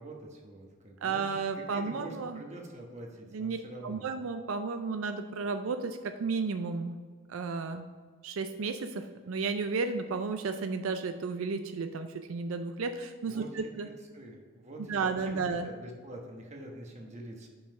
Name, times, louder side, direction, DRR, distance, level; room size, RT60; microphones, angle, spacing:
voice 1, 0.0-1.2 1.7-4.0 13.3-17.5, right 1 dB, 35° right, 0 dB, 1.2 m, -45 dB
voice 2, 1.0-2.4 3.3-3.6 3.8-7.0 7.3-7.9 8.2-13.9 14.8-15.7, right 4 dB, 85° right, 8 dB, 0.4 m, -33 dB
5.6 x 5.5 x 5.7 m, 1.5 s
head